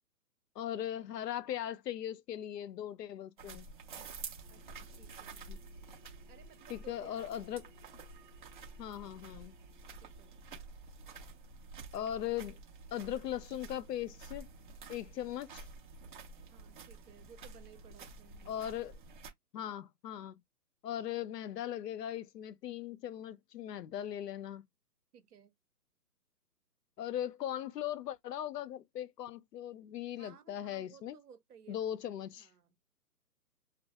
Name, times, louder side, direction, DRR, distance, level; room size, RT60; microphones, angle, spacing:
voice 1, 0.6-3.7 5.5-5.6 6.7-7.6 8.8-9.6 11.9-12.6 12.9-14.5 14.9-15.7 18.5-18.9 19.5-20.4 20.8-24.6 27.0-31.2 31.7-32.5, left 11 dB, 80° left, 0.6 m, -39 dB
sound 1, 3.4-19.3, right 4 dB, 30° right, 0.8 m, -50 dB
sound 2, 4.4-10.4, left 3 dB, 35° left, 0.6 m, -64 dB
voice 2, 4.5-5.5 6.3-7.5 10.0-10.4 16.5-18.9 25.1-25.5 30.1-32.8, right 7 dB, 70° right, 0.9 m, -59 dB
2.2 x 2.1 x 2.8 m
hypercardioid pair, 160°, 48 cm